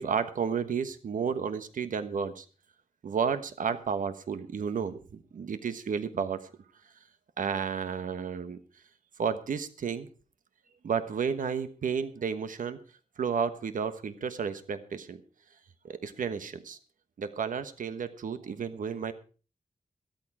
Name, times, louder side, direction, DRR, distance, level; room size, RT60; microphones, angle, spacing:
voice 1, 0.0-2.4 3.0-6.5 7.4-8.6 9.2-10.1 10.8-12.8 13.2-15.2 15.8-16.8 17.2-19.1, right 6 dB, 90° right, 11 dB, 1.3 m, -32 dB
13.5 x 13.5 x 4.8 m, 0.37 s
wide cardioid pair, 110°, 13 cm